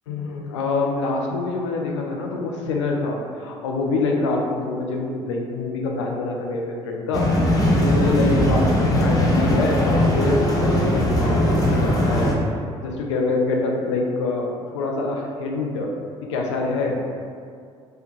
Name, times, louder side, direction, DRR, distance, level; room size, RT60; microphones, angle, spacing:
voice 1, 0.1-12.3 12.8-15.9 16.3-17.0, left 3 dB, 80° left, 0 dB, 0.4 m, -25 dB
sound 1, 7.1-12.3, equal, 25° left, 0.7 m, -19 dB
3.5 x 2.1 x 3.0 m, 2.3 s
figure-of-eight pair, 55°, 15 cm